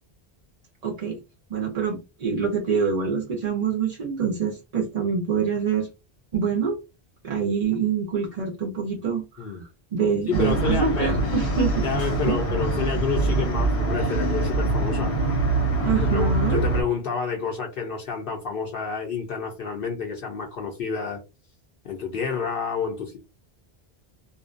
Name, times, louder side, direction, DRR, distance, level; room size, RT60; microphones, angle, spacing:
voice 1, 0.8-1.2 1.5-5.9 6.3-6.8 7.2-9.5 9.9-11.9 12.2-12.3 15.8-16.6, right 6 dB, 50° right, 0.5 m, -25 dB
sound 1, 10.3-16.8, right 2 dB, 80° left, 1.1 m, -24 dB
voice 2, 10.3-11.2 11.8-15.1 15.9-21.2 21.8-23.2, left 5 dB, 65° left, 0.7 m, -29 dB
2.5 x 2.1 x 2.4 m
omnidirectional pair, 1.1 m